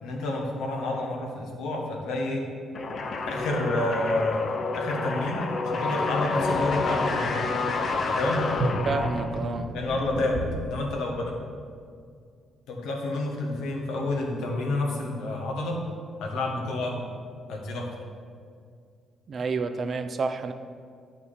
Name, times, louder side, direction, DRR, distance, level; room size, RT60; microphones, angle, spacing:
voice 1, 0.0-2.4 3.2-7.5 8.1-8.4 9.7-11.3 12.7-15.8 16.2-17.0 17.5-17.9, left 2 dB, 90° left, 0 dB, 1.4 m, -29 dB
sound 1, 2.7-9.5, left 3 dB, 50° left, 0.7 m, -29 dB
sound 2, 8.5-10.7, right 2 dB, 80° right, 2.0 m, -31 dB
voice 2, 8.9-9.7 19.3-20.5, right 4 dB, 50° right, 8 dB, 0.6 m, -29 dB
9.0 x 6.0 x 4.2 m, 2.2 s
cardioid pair, 90°, 0 cm